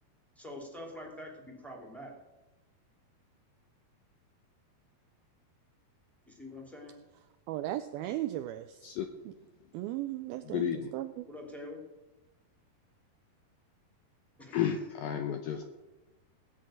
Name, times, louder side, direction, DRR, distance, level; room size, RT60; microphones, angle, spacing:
voice 1, 0.4-2.2 6.3-7.0 11.2-11.8 14.4-14.9, left 1 dB, ahead, -1 dB, 2.2 m, -45 dB
voice 2, 7.5-8.9 9.7-11.3, right 14 dB, 80° right, 10 dB, 2.2 m, -36 dB
voice 3, 10.4-10.9 14.5-15.7, left 9 dB, 75° left, 7 dB, 2.1 m, -32 dB
17.0 x 6.5 x 9.0 m, 1.1 s
omnidirectional pair, 4.8 m